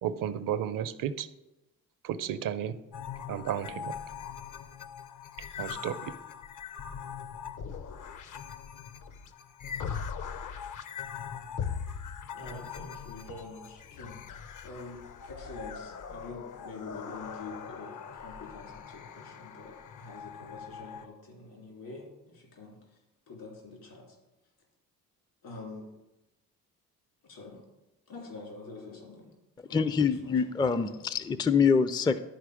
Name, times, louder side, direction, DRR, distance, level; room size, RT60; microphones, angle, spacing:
voice 1, 0.0-1.3 2.0-2.8 3.3-4.0 5.6-6.2, right 9 dB, 60° right, 14 dB, 0.6 m, -33 dB
sound 1, 2.9-21.1, left 7 dB, 55° left, 0.7 m, -41 dB
voice 2, 12.3-23.0 23.3-24.2 25.4-25.9 27.2-27.6 28.1-29.3 29.7-30.4 30.8-31.0, left 3 dB, 75° left, -1 dB, 3.3 m, -46 dB
voice 3, 29.7-32.2, left 5 dB, 10° left, 13 dB, 0.3 m, -25 dB
11.0 x 4.5 x 5.0 m, 1.0 s
supercardioid pair, 60°, 37 cm